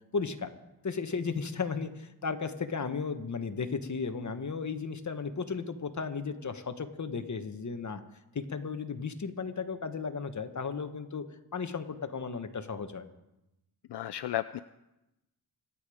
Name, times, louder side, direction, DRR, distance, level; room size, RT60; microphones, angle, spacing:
voice 1, 0.1-0.5 0.8-8.0 8.3-11.2 11.5-13.1, left 5 dB, 45° left, 8 dB, 1.2 m, -35 dB
voice 2, 13.9-14.6, left 13 dB, 70° left, 13 dB, 0.5 m, -33 dB
25.5 x 8.8 x 4.9 m, 0.94 s
wide cardioid pair, 95°, 42 cm